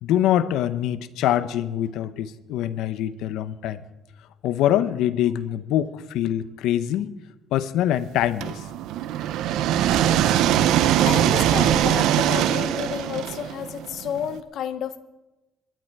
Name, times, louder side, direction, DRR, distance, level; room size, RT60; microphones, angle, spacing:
voice 1, 0.0-3.8 4.4-7.1 7.5-8.6, left 11 dB, 90° left, 14 dB, 0.7 m, -24 dB
sound 1, 8.4-14.3, right 11 dB, 85° right, 0.7 m, -21 dB
voice 2, 10.6-15.0, left 9 dB, 55° left, 12 dB, 0.7 m, -31 dB
22.5 x 11.5 x 4.7 m, 1.1 s
cardioid pair, 170°, 0 cm